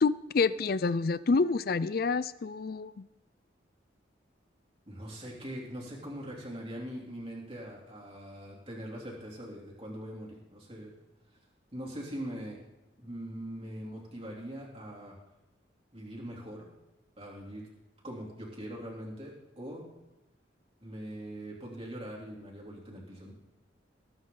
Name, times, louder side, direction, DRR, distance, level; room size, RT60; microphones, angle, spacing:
voice 1, 0.0-2.9, left 4 dB, 55° left, 16 dB, 0.4 m, -27 dB
voice 2, 4.9-10.9 11.7-12.6 13.0-15.1 15.9-16.7 17.2-17.7 18.0-19.8 20.8-23.3, equal, 30° right, -3 dB, 3.2 m, -42 dB
19.5 x 8.9 x 4.0 m, 1.0 s
head